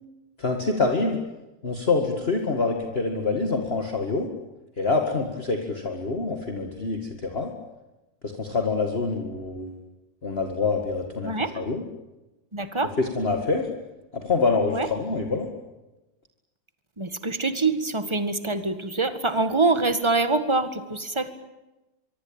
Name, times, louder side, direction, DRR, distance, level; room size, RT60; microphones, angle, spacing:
voice 1, 0.4-1.2 1.6-4.3 4.8-7.5 8.2-9.7 10.2-11.8 13.0-13.7 14.1-15.5, left 3 dB, 30° left, 3 dB, 2.3 m, -26 dB
voice 2, 12.5-12.9 14.7-14.9 17.0-21.3, right 3 dB, 15° right, 10 dB, 1.8 m, -25 dB
24.5 x 24.0 x 8.9 m, 1.0 s
omnidirectional pair, 2.0 m